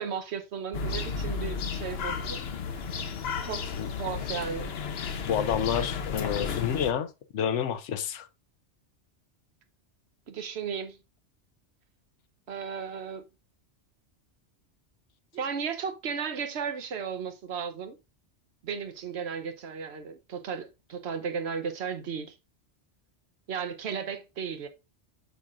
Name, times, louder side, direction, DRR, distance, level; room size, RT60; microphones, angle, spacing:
voice 1, 0.0-2.5 3.4-3.6 3.9-4.7 10.3-11.0 12.5-13.2 15.3-18.0 18.6-22.4 23.5-24.7, right 6 dB, 65° right, 1.1 m, -35 dB
sound 1, 0.7-6.9, left 5 dB, 65° left, 1.0 m, -33 dB
voice 2, 5.2-8.3, left 8 dB, 90° left, 1.0 m, -29 dB
8.3 x 5.9 x 2.4 m
omnidirectional pair, 1.2 m